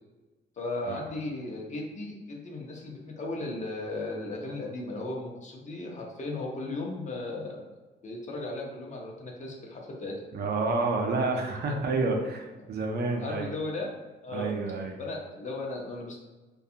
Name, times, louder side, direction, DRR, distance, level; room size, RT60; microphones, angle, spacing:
voice 1, 0.6-7.7 8.0-10.3 13.2-13.9 14.2-14.5 15.0-16.2, left 2 dB, 35° left, -1 dB, 0.6 m, -36 dB
voice 2, 10.3-13.5 14.3-15.0, right 3 dB, 55° right, 2 dB, 0.5 m, -29 dB
2.4 x 2.3 x 2.7 m, 1.2 s
cardioid pair, 90°, 20 cm